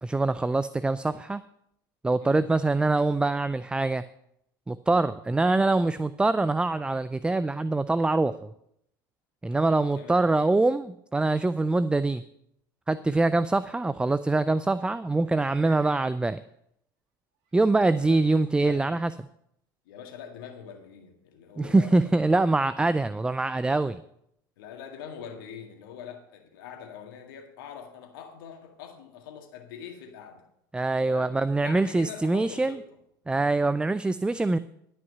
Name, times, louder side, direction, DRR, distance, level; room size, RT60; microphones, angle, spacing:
voice 1, 0.0-1.4 2.0-4.0 4.7-8.5 9.4-12.2 12.9-16.4 17.5-19.1 21.6-24.0 30.7-32.8 33.3-34.6, right 2 dB, 10° right, 15 dB, 0.3 m, -24 dB
sound 1, 15.2-16.5 17.4-17.6 18.3-18.4, right 7 dB, 65° right, 2.2 m, -54 dB
voice 2, 17.8-18.2 18.6-18.9 19.9-22.1 24.6-30.5 31.0-32.8, left 8 dB, 75° left, 4 dB, 1.9 m, -44 dB
12.5 x 5.6 x 6.7 m, 0.75 s
hypercardioid pair, 80°, 12 cm